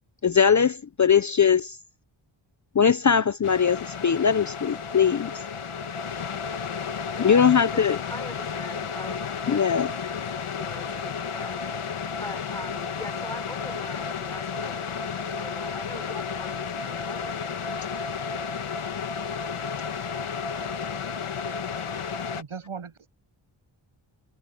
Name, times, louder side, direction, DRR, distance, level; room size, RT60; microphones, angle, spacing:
voice 1, 0.2-1.8 2.7-5.3 7.2-8.0 9.5-9.9, left 7 dB, 40° left, 0.5 m, -21 dB
sound 1, 3.4-22.4, left 6 dB, 85° left, 2.0 m, -32 dB
voice 2, 7.1-7.7 8.1-9.9 10.1-11.6 12.1-17.3, left 1 dB, 5° left, 4.2 m, -43 dB
voice 3, 22.3-23.1, right 6 dB, 80° right, 7.2 m, -39 dB
wide cardioid pair, 145°, 49 cm